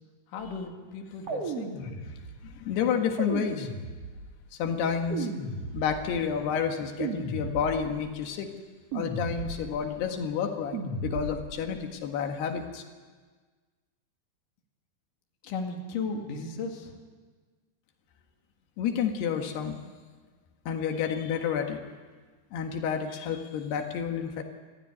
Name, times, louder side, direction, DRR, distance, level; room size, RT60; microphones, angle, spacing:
voice 1, 0.3-1.7 15.4-17.0, left 4 dB, 60° left, 2 dB, 3.6 m, -35 dB
sound 1, 1.3-2.5 3.2-4.4 5.1-6.2 7.0-8.0 8.9-9.9 10.7-11.6, right 3 dB, 45° right, 3.1 m, -35 dB
voice 2, 1.8-3.7 4.6-5.3 5.7-8.5 8.9-12.8 18.8-19.8 20.7-21.8 22.5-24.4, left 7 dB, 90° left, 4 dB, 3.7 m, -30 dB
26.5 x 15.5 x 9.7 m, 1.4 s
omnidirectional pair, 4.5 m